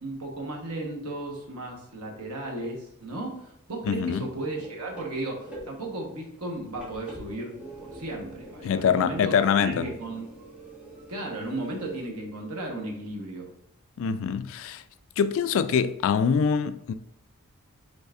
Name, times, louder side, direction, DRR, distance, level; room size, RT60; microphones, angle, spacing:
voice 1, 0.0-10.3 11.1-13.5, right 2 dB, 85° right, 1.2 m, -35 dB
sound 1, 2.6-12.1, right 1 dB, 5° right, 1.3 m, -45 dB
voice 2, 3.8-4.3 8.6-10.0 14.0-14.8 15.2-16.9, left 7 dB, 60° left, 0.3 m, -24 dB
5.3 x 4.0 x 2.5 m
head